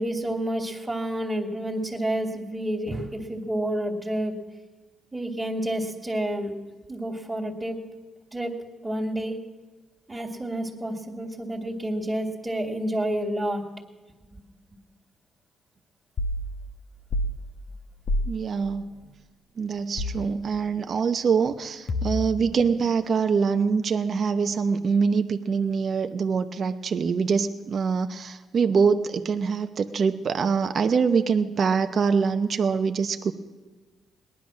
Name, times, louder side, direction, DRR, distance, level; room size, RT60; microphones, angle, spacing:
voice 1, 0.0-4.3 5.1-6.5 6.9-7.8 8.3-8.5 8.8-9.4 10.1-13.6, right 1 dB, 15° right, -2 dB, 2.2 m, -29 dB
sound 1, 16.2-16.4 17.1-17.4 18.1-18.3 20.0-20.3 21.9-22.4, left 1 dB, 55° left, 1.1 m, -27 dB
voice 2, 18.3-18.9 19.6-33.3, right 5 dB, 50° right, 7 dB, 0.7 m, -24 dB
19.0 x 11.0 x 6.2 m, 1.3 s
cardioid pair, 90°, 0 cm